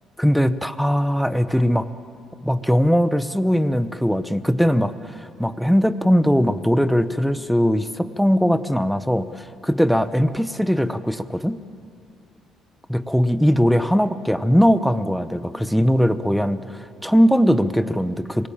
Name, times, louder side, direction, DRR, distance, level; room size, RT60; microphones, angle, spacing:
voice 1, 0.2-1.9 2.4-11.6 12.9-18.5, equal, ahead, 11 dB, 0.9 m, -20 dB
28.0 x 19.5 x 8.8 m, 2.5 s
cardioid pair, 105°, 0 cm